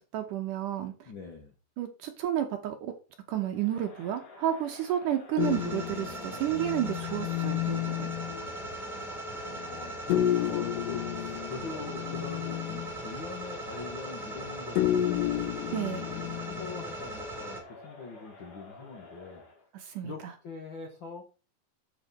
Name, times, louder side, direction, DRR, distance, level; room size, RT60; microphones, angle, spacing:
voice 1, 0.0-1.1 1.8-2.9 3.3-8.1 15.7-16.1 19.7-20.3, right 11 dB, 70° right, 6 dB, 2.1 m, -31 dB
voice 2, 1.0-1.5 9.4-15.5 16.1-19.4 20.0-21.3, left 4 dB, 65° left, 2 dB, 1.2 m, -43 dB
Crowd, 3.5-19.7, left 2 dB, 40° left, 2.8 m, -50 dB
sound 1, 5.4-8.5 10.1-13.0 14.8-16.9, left 12 dB, 85° left, 1.9 m, -31 dB
sound 2, 5.4-17.6, right 1 dB, ahead, 2.1 m, -39 dB
8.8 x 7.3 x 4.2 m, 0.33 s
omnidirectional pair, 4.5 m